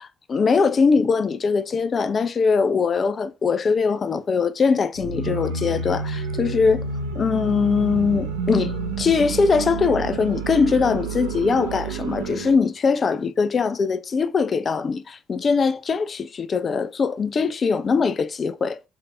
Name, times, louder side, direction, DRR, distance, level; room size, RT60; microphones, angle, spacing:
voice 1, 0.0-6.8 7.2-18.8, left 5 dB, 40° left, 0.4 m, -21 dB
sound 1, 4.9-12.6, right 4 dB, 80° right, 0.6 m, -29 dB
3.8 x 2.6 x 3.3 m
hypercardioid pair, 50°, 0 cm